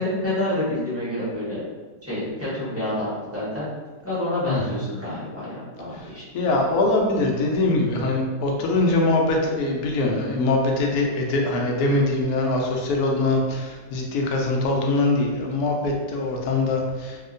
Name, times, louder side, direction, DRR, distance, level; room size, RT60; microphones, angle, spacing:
voice 1, 0.0-1.6 2.0-3.7 4.0-6.2, left 1 dB, 10° right, -11 dB, 1.0 m, -28 dB
voice 2, 6.3-17.2, left 2 dB, 75° left, 0 dB, 1.1 m, -23 dB
2.9 x 2.8 x 2.5 m, 1.3 s
omnidirectional pair, 1.7 m